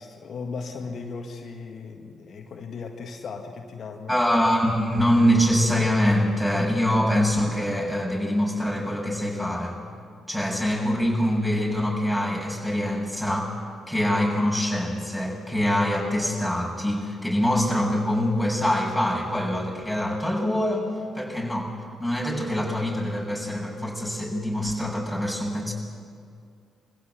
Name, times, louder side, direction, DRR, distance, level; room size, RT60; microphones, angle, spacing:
voice 1, 0.0-4.1, left 4 dB, 60° left, 3 dB, 1.8 m, -37 dB
voice 2, 4.1-9.7 10.3-13.5 13.9-20.9 21.1-21.7 22.0-25.7, equal, ahead, -1 dB, 7.1 m, -24 dB
23.5 x 15.5 x 8.3 m, 2.3 s
hypercardioid pair, 45°, 0 cm